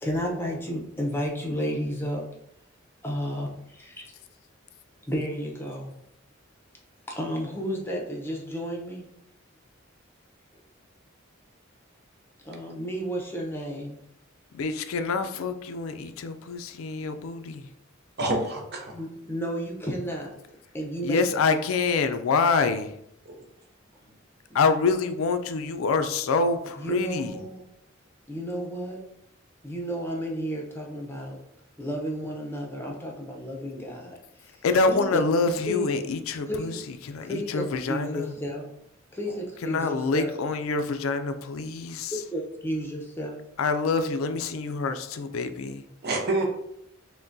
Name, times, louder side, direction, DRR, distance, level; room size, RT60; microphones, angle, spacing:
voice 1, 0.0-2.2 3.0-4.1 5.1-5.9 7.1-9.1 12.4-14.0 18.9-20.3 20.7-21.3 24.5-24.6 26.8-27.7 28.3-29.0 29.6-31.4 31.8-34.6 34.9-35.2 35.6-35.9 36.5-36.8 37.2-38.7 39.1-40.4 42.1-43.4, equal, 10° left, 0.7 m, -32 dB
voice 2, 14.5-17.7 21.0-22.9 24.5-27.3 34.6-36.7 37.0-38.3 39.6-42.1 43.6-45.8, left 4 dB, 90° left, 0.4 m, -26 dB
voice 3, 18.2-19.0 23.2-23.3 46.0-46.5, right 2 dB, 50° right, 0.7 m, -27 dB
5.8 x 2.2 x 2.6 m
head